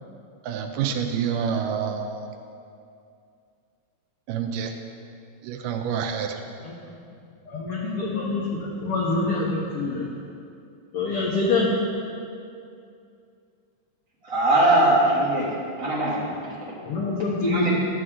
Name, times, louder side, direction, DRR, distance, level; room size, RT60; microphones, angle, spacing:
voice 1, 0.4-2.3 4.3-4.8 5.4-6.4, right 7 dB, 90° right, 5 dB, 2.2 m, -27 dB
voice 2, 6.6-7.0 7.5-10.1 10.9-11.7 16.8-17.7, left 3 dB, 80° left, -3 dB, 1.3 m, -26 dB
voice 3, 14.2-16.2 17.5-17.8, right 1 dB, 30° right, -8 dB, 2.0 m, -21 dB
11.5 x 7.8 x 3.7 m, 2.4 s
omnidirectional pair, 3.8 m